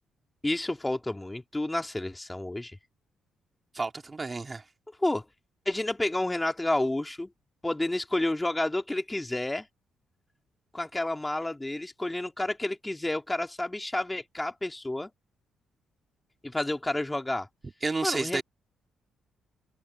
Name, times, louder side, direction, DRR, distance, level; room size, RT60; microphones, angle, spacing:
voice 1, 0.4-2.8 5.0-5.2 5.7-7.3 7.6-9.7 10.7-15.1 16.4-17.5 18.0-18.4, left 1 dB, 10° left, 2.7 m, -30 dB
voice 2, 3.7-4.6 17.8-18.4, right 3 dB, 25° right, 2.6 m, -31 dB
cardioid pair, 90°, 0 cm